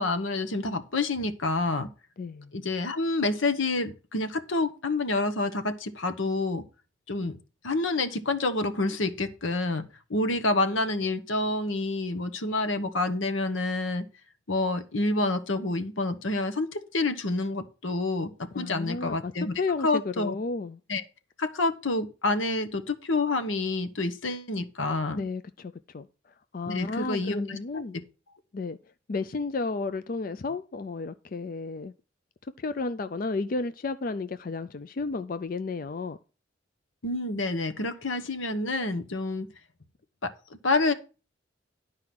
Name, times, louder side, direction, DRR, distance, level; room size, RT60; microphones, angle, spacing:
voice 1, 0.0-1.9 2.5-6.6 7.1-7.4 7.6-9.8 10.1-14.0 14.5-19.5 19.8-20.3 20.9-21.0 21.4-25.2 26.7-27.8 37.0-39.5 40.2-40.3 40.6-40.9, left 2 dB, 90° left, 1.2 m, -28 dB
voice 2, 2.2-2.5 18.5-19.3 19.6-20.8 25.2-26.1 26.5-28.0 28.5-28.8 29.1-31.9 32.6-36.2, left 3 dB, 45° left, 0.4 m, -32 dB
11.0 x 4.8 x 6.0 m
head